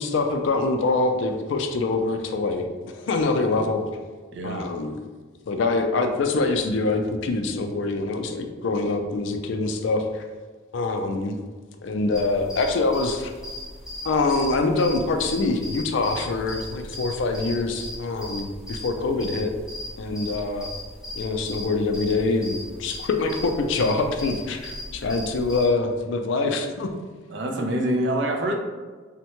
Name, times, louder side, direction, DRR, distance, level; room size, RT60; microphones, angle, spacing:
voice 1, 0.0-2.7 2.9-3.9 4.4-5.0 5.5-10.3 10.7-11.4 11.8-13.3 14.0-19.5 20.0-20.7 21.2-26.9, left 3 dB, 70° left, 6 dB, 0.3 m, -24 dB
voice 2, 4.3-4.7 27.3-28.6, right 1 dB, 60° right, 3 dB, 0.4 m, -25 dB
sound 1, 12.1-25.6, left 1 dB, ahead, 0.5 m, -38 dB
3.4 x 2.1 x 2.9 m, 1.4 s
head